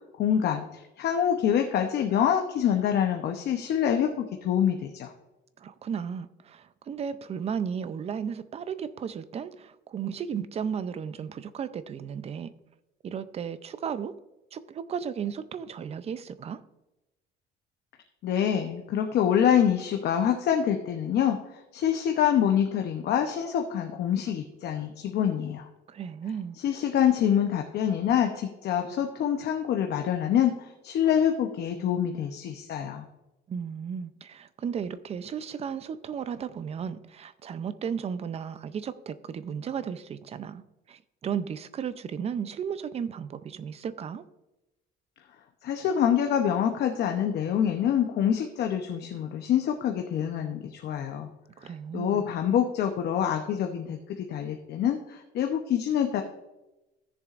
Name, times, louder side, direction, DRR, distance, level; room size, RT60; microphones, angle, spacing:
voice 1, 0.2-5.1 18.2-21.4 21.7-25.7 26.6-33.0 45.6-51.3 51.9-56.2, left 9 dB, 60° left, 4 dB, 0.8 m, -26 dB
voice 2, 5.6-12.5 13.0-14.1 14.5-16.6 25.9-26.6 33.5-40.6 40.9-44.2 51.6-52.3, right 7 dB, 35° right, 13 dB, 0.5 m, -34 dB
16.0 x 7.0 x 2.5 m, 0.99 s
cardioid pair, 140°, 19 cm